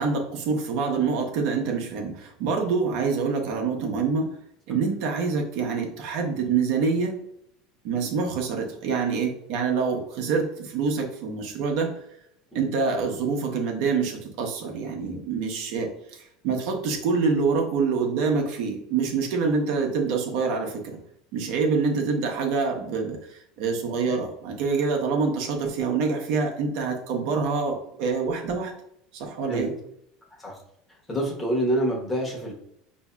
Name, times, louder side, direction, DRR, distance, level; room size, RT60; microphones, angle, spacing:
voice 1, 0.0-4.3 4.7-7.2 7.8-11.9 12.5-20.8 21.3-28.7 29.1-29.7, right 5 dB, 70° right, 1 dB, 0.7 m, -26 dB
voice 2, 31.1-32.5, right 1 dB, 20° left, -1 dB, 1.0 m, -26 dB
4.5 x 2.6 x 2.2 m, 0.74 s
supercardioid pair, 105°, 0 cm